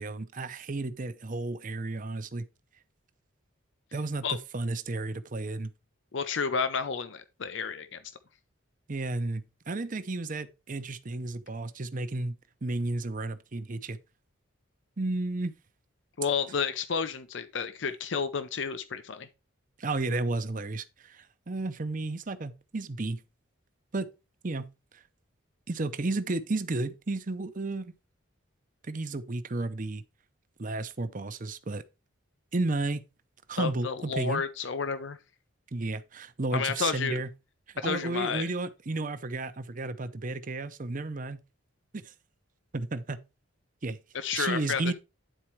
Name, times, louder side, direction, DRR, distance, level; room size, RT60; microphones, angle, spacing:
voice 1, 0.0-2.4 3.9-5.7 8.9-12.3 12.6-14.0 15.0-15.5 19.8-23.2 23.9-24.1 24.4-24.7 25.7-27.9 28.9-30.0 30.6-31.8 32.5-33.0 33.5-34.4 35.7-37.3 37.8-41.4 41.9-42.1 42.7-43.2 43.8-44.0 44.3-44.9, right 2 dB, 40° right, 0.7 m, -32 dB
voice 2, 6.1-8.0 16.2-19.3 33.6-35.2 36.5-37.2 37.8-38.5 44.1-44.8, left 6 dB, 60° left, 0.6 m, -31 dB
10.0 x 4.3 x 4.5 m
head